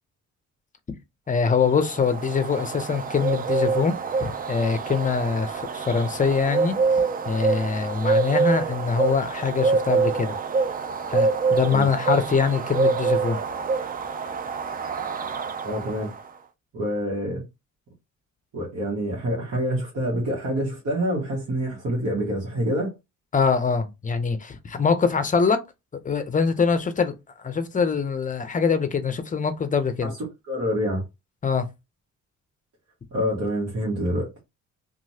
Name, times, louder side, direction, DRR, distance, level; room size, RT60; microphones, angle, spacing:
voice 1, 1.3-6.8 7.3-10.4 11.1-13.4 23.3-25.6 26.0-27.1 27.4-30.1 31.4-31.7, left 5 dB, 25° left, 0.6 m, -23 dB
sound 1, 1.6-16.2, right 4 dB, 30° right, 0.4 m, -26 dB
voice 2, 15.6-16.1 16.7-17.4 18.5-22.9 30.0-30.2 30.5-31.0 33.1-34.3, equal, 55° right, 1.3 m, -26 dB
2.9 x 2.5 x 2.7 m
cardioid pair, 90°, 30 cm